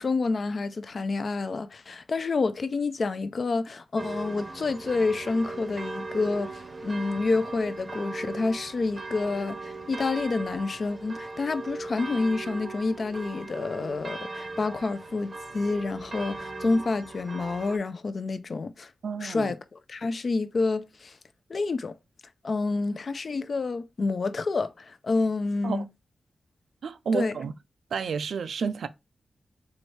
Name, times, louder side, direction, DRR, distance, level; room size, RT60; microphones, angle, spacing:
voice 1, 0.0-18.9 19.2-21.2 21.5-22.0 22.4-25.9 27.1-27.3, left 3 dB, 45° left, 0.4 m, -28 dB
sound 1, 4.0-17.8, right 3 dB, 30° right, 0.7 m, -38 dB
voice 2, 19.0-19.5 25.6-25.8 26.8-27.5 27.9-28.9, right 5 dB, 75° right, 0.4 m, -30 dB
4.4 x 2.6 x 3.2 m
wide cardioid pair, 165°, 0 cm